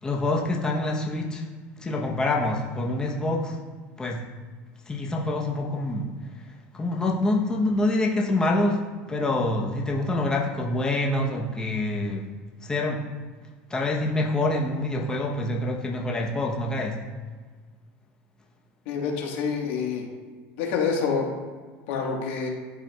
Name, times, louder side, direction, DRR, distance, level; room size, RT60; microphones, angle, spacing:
voice 1, 0.0-1.4 1.8-3.6 4.0-4.2 4.9-6.1 6.7-8.8 9.1-12.3 12.6-13.0 13.7-17.0, left 2 dB, 10° left, -1 dB, 0.8 m, -26 dB
voice 2, 18.9-20.0 20.6-21.3 21.9-22.5, left 5 dB, 80° left, 0 dB, 1.4 m, -27 dB
11.5 x 4.5 x 2.3 m, 1.5 s
supercardioid pair, 140°, 6 cm